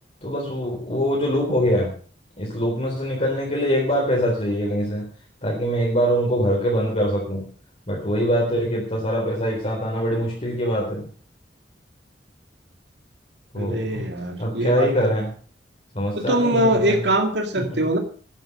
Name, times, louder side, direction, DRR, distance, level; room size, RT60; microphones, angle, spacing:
voice 1, 0.2-1.9 2.4-5.1 5.4-7.5 7.9-11.1 13.5-14.1 14.4-15.3 15.9-17.0 17.6-17.8, equal, 40° left, -2 dB, 3.9 m, -23 dB
voice 2, 13.6-14.9 16.2-18.0, right 1 dB, 80° right, 5 dB, 2.1 m, -22 dB
11.5 x 11.0 x 6.7 m, 0.43 s
head